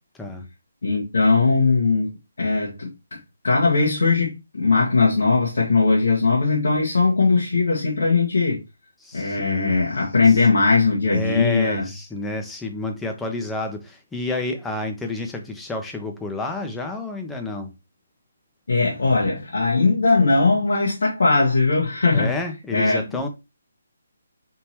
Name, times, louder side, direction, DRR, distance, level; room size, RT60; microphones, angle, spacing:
voice 1, 0.8-2.1 2.4-8.6 9.1-11.8 18.7-22.3 22.7-23.3, left 4 dB, 70° left, 1.3 m, -19 dB
voice 2, 9.0-9.8 10.2-10.5 11.1-17.7 22.1-23.3, left 2 dB, 5° left, 0.8 m, -30 dB
3.6 x 2.9 x 4.3 m
figure-of-eight pair, 150°, 0 cm